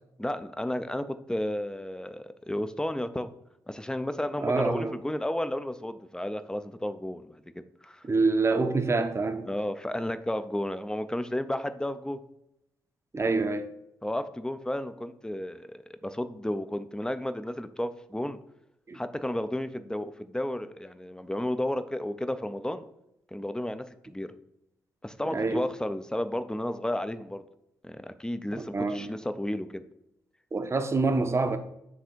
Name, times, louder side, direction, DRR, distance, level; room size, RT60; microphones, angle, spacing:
voice 1, 0.2-3.3 3.7-8.0 9.5-12.2 14.0-18.4 18.9-22.9 23.3-24.3 25.0-27.4 27.8-29.8, left 1 dB, 10° left, 0.6 m, -32 dB
voice 2, 4.4-4.9 8.0-9.5 13.1-13.7 18.9-19.0 25.3-25.7 28.5-29.1 30.5-31.6, right 3 dB, 30° right, 0.8 m, -26 dB
9.3 x 3.4 x 4.5 m
hypercardioid pair, 40°, 9 cm